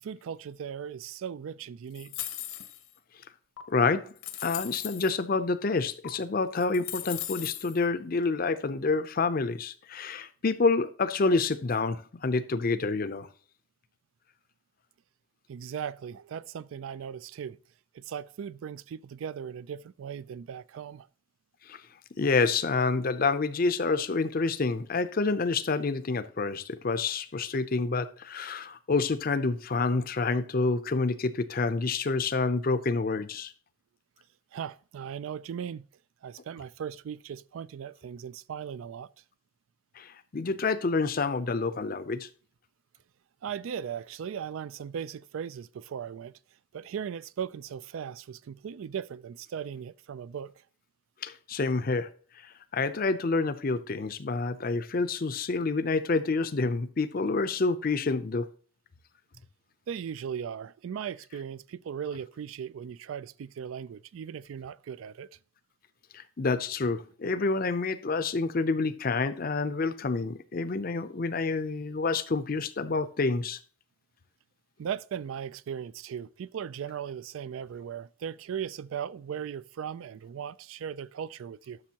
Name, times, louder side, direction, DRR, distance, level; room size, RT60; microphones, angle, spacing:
voice 1, 0.0-2.3 15.5-17.6 17.9-21.1 34.5-35.8 36.2-39.1 43.4-46.3 46.7-50.5 59.9-65.3 74.8-81.8, right 8 dB, 70° right, 0.3 m, -38 dB
sound 1, 1.9-2.9 3.6-3.7 4.2-5.1 6.0-6.1 6.6-7.8, left 12 dB, 75° left, 0.9 m, -38 dB
voice 2, 3.7-4.1 4.4-13.3 21.7-21.8 22.2-33.5 40.0-42.3 51.2-52.1 52.7-58.5 66.1-73.6, left 3 dB, 40° left, 0.5 m, -28 dB
12.0 x 6.2 x 2.9 m
head